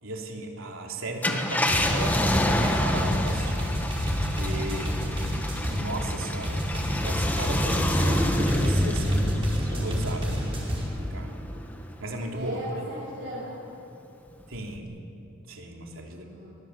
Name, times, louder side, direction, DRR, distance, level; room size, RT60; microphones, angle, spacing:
voice 1, 0.0-3.7 4.1-5.2 5.5-9.4 9.7-10.4 10.6-11.4 12.0-12.6 14.5-14.9 15.5-16.2, right 2 dB, 80° right, 1 dB, 3.2 m, -36 dB
Car, 1.1-11.9 12.4-12.5 14.5-14.8, left 1 dB, 10° left, 1.6 m, -28 dB
sound 1, 1.7-5.8 6.4-10.8, equal, 25° right, 4.7 m, -29 dB
voice 2, 12.3-13.5 15.7-16.5, right 1 dB, 55° right, -9 dB, 8.0 m, -38 dB
23.5 x 21.0 x 8.2 m, 2.7 s
head